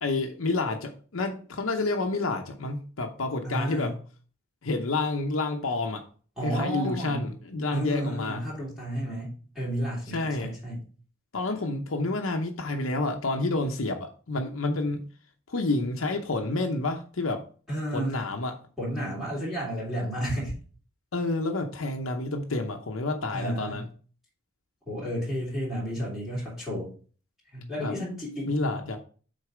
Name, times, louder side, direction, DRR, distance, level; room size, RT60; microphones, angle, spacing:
voice 1, 0.0-3.9 4.6-6.0 6.4-8.4 10.1-10.5 11.3-15.0 15.5-17.4 17.9-18.6 21.1-23.9 27.8-27.9 28.5-29.0, left 2 dB, 75° left, 3 dB, 0.8 m, -29 dB
voice 2, 3.4-3.9 6.4-7.3 7.7-10.8 17.7-18.2 18.8-20.6 23.3-23.8 24.9-26.9 27.5-28.5, equal, 5° right, -9 dB, 3.0 m, -32 dB
6.5 x 4.1 x 4.9 m, 0.41 s
head